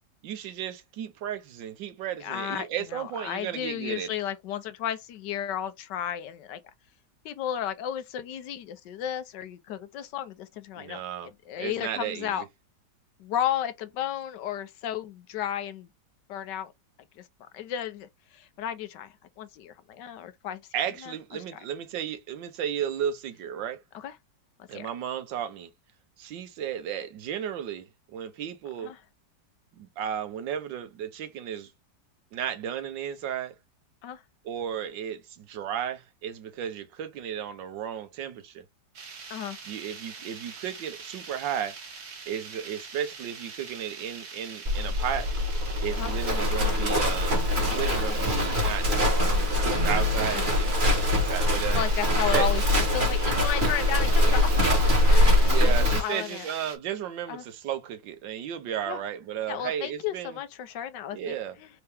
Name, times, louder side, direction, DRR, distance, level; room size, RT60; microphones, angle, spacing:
voice 1, 0.2-4.2 10.8-11.3 11.6-12.5 20.7-23.8 24.7-25.7 26.2-28.9 29.8-31.7 32.3-33.5 34.4-38.6 39.7-41.8 42.3-45.3 45.8-50.8 51.1-51.8 52.3-52.5 55.5-60.4 61.1-61.5, right 9 dB, 85° right, 1.5 m, -34 dB
voice 2, 2.2-6.6 7.2-11.0 11.5-12.4 13.2-15.9 16.3-16.7 17.2-20.6 21.0-21.1 23.9-24.1 24.7-24.9 28.8-29.0 34.0-34.2 39.3-39.6 46.0-46.1 50.3-50.5 51.7-54.7 55.1-56.5 57.3-57.4 58.9-59.0 59.5-61.7, left 10 dB, 75° left, 1.3 m, -33 dB
sound 1, 38.9-56.8, right 5 dB, 60° right, 1.8 m, -43 dB
Livestock farm animals working animals, 44.6-56.0, left 1 dB, 30° right, 1.5 m, -23 dB
4.4 x 2.9 x 3.4 m
omnidirectional pair, 1.9 m